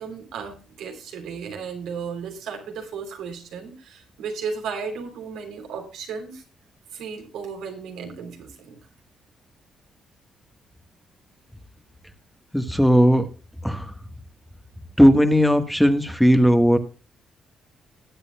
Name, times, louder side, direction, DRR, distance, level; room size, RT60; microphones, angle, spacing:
voice 1, 0.0-6.4 6.9-8.8, right 6 dB, 85° right, 3 dB, 3.3 m, -34 dB
voice 2, 12.5-13.3 13.6-13.9 15.0-16.8, equal, ahead, 8 dB, 1.3 m, -17 dB
20.0 x 8.2 x 2.2 m, 0.34 s
cardioid pair, 90°, 0 cm